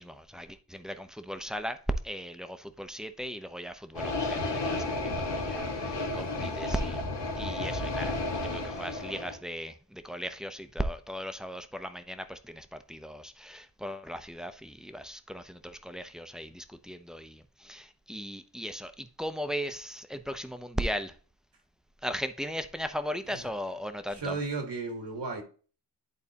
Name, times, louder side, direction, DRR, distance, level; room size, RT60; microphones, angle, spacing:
voice 1, 0.0-1.8 2.0-7.0 7.4-21.1 22.0-24.4, equal, ahead, 0.5 m, -37 dB
sound 1, 3.9-9.4, left 2 dB, 90° left, 1.4 m, -32 dB
voice 2, 24.1-25.4, right 3 dB, 75° right, 1.6 m, -35 dB
10.5 x 4.0 x 2.8 m
wide cardioid pair, 100°, 41 cm